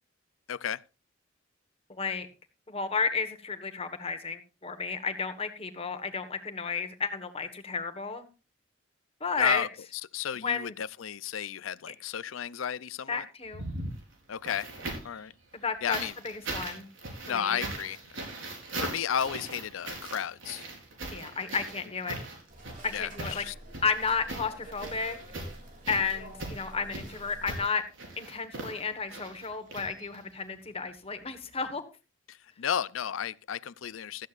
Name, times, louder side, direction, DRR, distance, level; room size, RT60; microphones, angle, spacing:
voice 1, 0.5-0.8 9.4-9.7 10.1-13.3 14.3-14.7 15.0-15.3 15.8-16.1 17.3-18.3 18.8-20.7 22.9-23.5 32.3-34.3, left 8 dB, 90° left, 0.5 m, -33 dB
voice 2, 1.9-2.3 2.7-8.3 9.2-9.7 10.4-10.7 13.1-13.7 15.5-16.0 16.2-16.9 17.3-17.6 21.1-22.2 22.8-23.4 23.8-25.2 25.9-27.8 28.2-31.8, left 5 dB, 30° left, 1.4 m, -32 dB
sound 1, 13.4-15.2 15.9-30.4 31.5-31.6, right 2 dB, 80° right, 4.5 m, -40 dB
sound 2, 22.5-27.7, right 1 dB, 40° right, 3.3 m, -48 dB
16.0 x 13.5 x 2.5 m
head